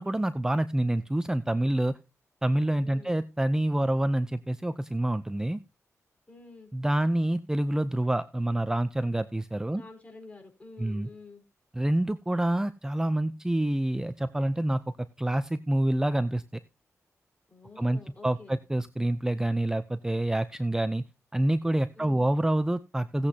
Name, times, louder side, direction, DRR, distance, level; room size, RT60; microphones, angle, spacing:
voice 1, 0.0-2.0 2.4-5.6 6.7-9.8 10.8-11.1 11.7-14.8 15.2-16.4 17.8-21.0 21.3-23.3, right 1 dB, 10° right, 12 dB, 0.6 m, -27 dB
voice 2, 2.8-3.2 6.3-6.7 9.7-11.4 17.5-18.6 21.9-22.3, left 3 dB, 25° left, 3 dB, 4.6 m, -49 dB
17.5 x 8.1 x 2.8 m, 0.28 s
cardioid pair, 85°, 6 cm